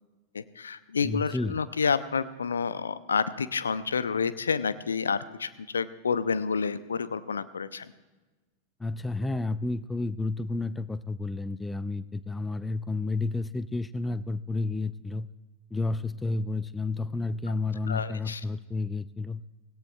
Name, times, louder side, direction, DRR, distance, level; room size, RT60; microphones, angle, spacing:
voice 1, 0.3-7.9 17.9-18.4, left 5 dB, 70° left, 14 dB, 0.6 m, -29 dB
voice 2, 1.0-1.6 8.8-15.3 15.7-19.4, left 3 dB, 10° left, 16 dB, 0.5 m, -31 dB
24.5 x 17.0 x 2.4 m, 1.2 s
figure-of-eight pair, 90°, 0 cm